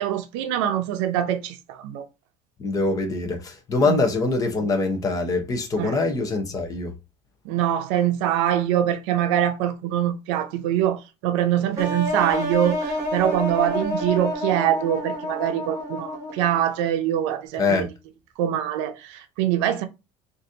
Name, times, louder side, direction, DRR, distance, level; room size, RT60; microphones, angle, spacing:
voice 1, 0.0-2.0 3.9-4.0 5.8-6.0 7.4-17.8 18.4-19.8, right 11 dB, 85° right, 0.6 m, -24 dB
voice 2, 2.6-6.9 17.6-17.9, left 3 dB, 25° left, 0.7 m, -24 dB
sound 1, 11.8-16.6, left 1 dB, 20° right, 1.4 m, -29 dB
3.9 x 2.6 x 2.6 m
cardioid pair, 160°, 15 cm